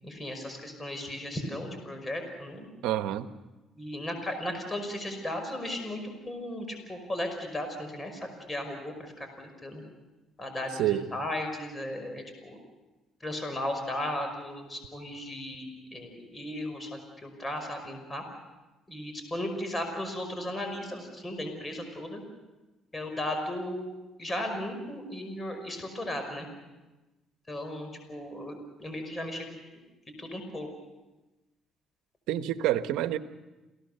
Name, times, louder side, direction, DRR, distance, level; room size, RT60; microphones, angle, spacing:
voice 1, 0.0-2.7 3.8-6.0 6.3-9.8 10.4-10.8 11.1-12.6 13.2-18.2 18.9-22.2 22.9-23.9 24.2-26.5 27.5-29.4 30.2-30.7, left 1 dB, 20° left, 5 dB, 5.4 m, -36 dB
voice 2, 2.8-3.3 10.8-11.1 32.3-33.2, right 13 dB, 80° right, 11 dB, 1.1 m, -27 dB
29.0 x 17.5 x 6.7 m, 1.1 s
supercardioid pair, 80°, 0 cm